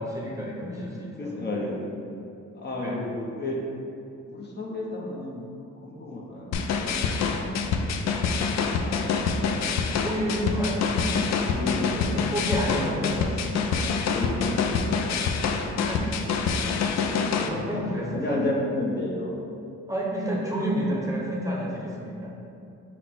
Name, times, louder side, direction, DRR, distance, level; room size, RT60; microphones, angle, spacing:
voice 1, 0.0-1.7 2.7-3.0 10.0-11.1 12.0-13.9 15.8-16.3 17.4-18.6 19.9-22.3, equal, 10° right, -4 dB, 0.8 m, -30 dB
voice 2, 1.2-1.9 2.5-3.6 4.3-5.5 5.8-8.0 8.7-9.7 11.5-12.3 14.0-15.1 17.4-17.6 18.1-19.3, left 2 dB, 35° left, -3 dB, 0.7 m, -33 dB
sound 1, 6.5-17.5, left 5 dB, 60° left, 0.4 m, -26 dB
5.7 x 2.1 x 4.3 m, 2.7 s
cardioid pair, 90°, 30 cm